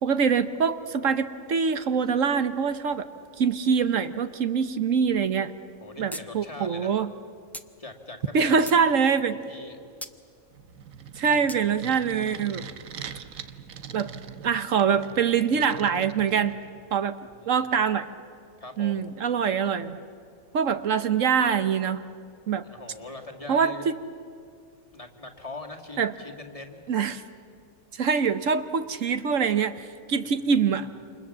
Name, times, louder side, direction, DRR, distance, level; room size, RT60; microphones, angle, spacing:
voice 1, 0.0-3.1 3.4-5.5 6.0-7.1 8.3-9.3 11.2-12.7 13.9-14.1 14.4-16.5 16.9-17.2 17.5-18.1 18.8-20.0 20.5-22.0 22.5-22.6 23.5-24.0 26.0-26.1 26.9-27.2 27.9-30.9, right 6 dB, 70° right, 10 dB, 1.3 m, -24 dB
voice 2, 5.8-6.9 7.8-8.9 9.4-9.8 17.3-17.7 18.6-19.0 22.6-23.9 24.9-26.8 30.2-30.8, left 2 dB, 25° left, 3 dB, 2.1 m, -42 dB
sound 1, 6.1-6.2 6.5-6.6 7.5-7.7 8.3-8.8 10.0-10.2 11.5-11.6, equal, ahead, 0.6 m, -38 dB
sound 2, 10.5-16.8, right 7 dB, 85° right, 1.4 m, -42 dB
28.5 x 27.0 x 7.4 m, 2.3 s
omnidirectional pair, 1.4 m